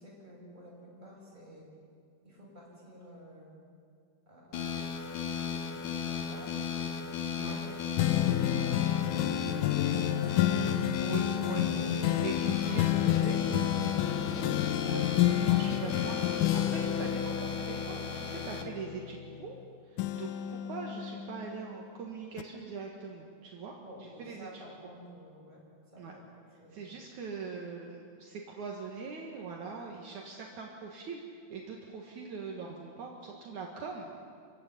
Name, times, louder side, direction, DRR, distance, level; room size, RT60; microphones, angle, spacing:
voice 1, 0.0-1.7 2.2-3.6 4.3-7.8 14.0-14.8 23.8-25.6 25.9-27.0, equal, 10° right, -5 dB, 8.1 m, -51 dB
sound 1, 4.5-18.6, left 5 dB, 60° left, 2.9 m, -36 dB
sound 2, 8.0-19.6 20.0-21.9 22.4-22.5, left 12 dB, 75° left, 2.3 m, -30 dB
voice 2, 11.0-11.7 12.2-13.4 14.8-19.6 19.8-23.7 24.2-24.6 26.0-26.1 26.7-34.2, right 5 dB, 65° right, 0 dB, 3.0 m, -42 dB
27.0 x 16.5 x 9.9 m, 2.3 s
omnidirectional pair, 3.8 m